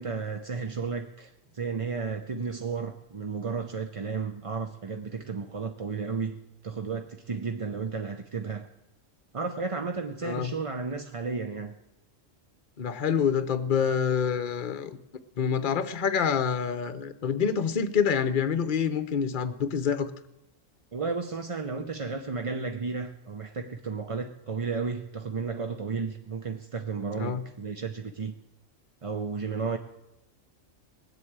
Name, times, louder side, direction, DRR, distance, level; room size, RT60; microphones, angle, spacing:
voice 1, 0.0-6.4 6.6-8.7 9.3-11.7 20.9-28.3 29.0-29.8, right 5 dB, 35° right, 6 dB, 0.5 m, -33 dB
voice 2, 10.2-10.5 12.8-15.0 15.4-20.1 27.2-27.4, left 7 dB, 45° left, 11 dB, 0.9 m, -27 dB
19.5 x 7.9 x 8.8 m, 0.94 s
omnidirectional pair, 1.4 m